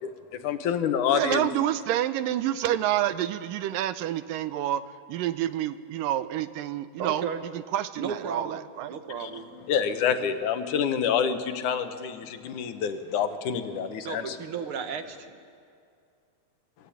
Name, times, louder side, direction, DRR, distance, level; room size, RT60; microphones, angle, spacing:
voice 1, 0.4-1.5 9.2-9.3 9.7-14.4, left 7 dB, 70° left, 8 dB, 2.6 m, -27 dB
voice 2, 1.1-4.8 5.1-8.9, right 12 dB, 80° right, 13 dB, 2.4 m, -28 dB
voice 3, 7.0-7.4 8.0-9.5 14.0-15.4, right 6 dB, 55° right, 8 dB, 1.6 m, -34 dB
27.0 x 21.0 x 8.6 m, 2.4 s
omnidirectional pair, 3.9 m